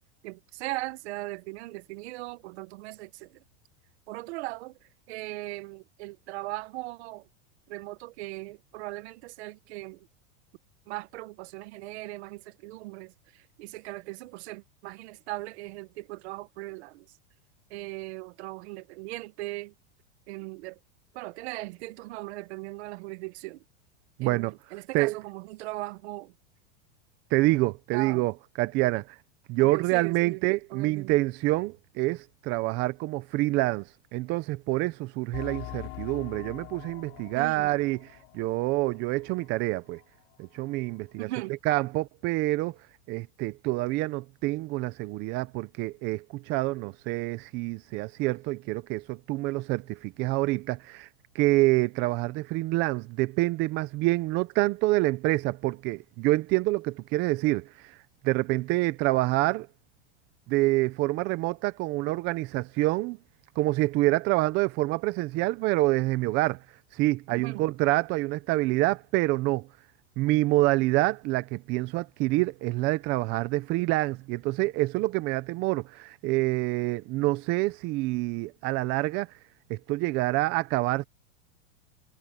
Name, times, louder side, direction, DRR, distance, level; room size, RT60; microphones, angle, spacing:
voice 1, 0.2-3.4 4.1-4.8 5.1-7.3 7.7-10.1 10.9-17.1 17.7-19.7 20.3-20.8 21.1-23.6 24.2-26.3 27.9-28.2 29.6-31.2 37.3-37.8 41.2-41.5 67.3-67.7, right 19 dB, 60° right, 1.5 m, -39 dB
voice 2, 24.2-24.5 24.9-25.2 27.3-29.2 29.5-40.0 40.4-41.3 41.7-42.8 43.1-51.1 51.3-58.0 58.2-59.7 60.5-63.2 63.6-66.6 66.9-69.7 70.2-79.3 79.7-81.0, right 20 dB, 30° right, 0.5 m, -27 dB
sound 1, 35.3-39.6 39.9-40.0 40.6-40.7, left 23 dB, 45° left, 3.7 m, -43 dB
supercardioid pair, 155°, 38 cm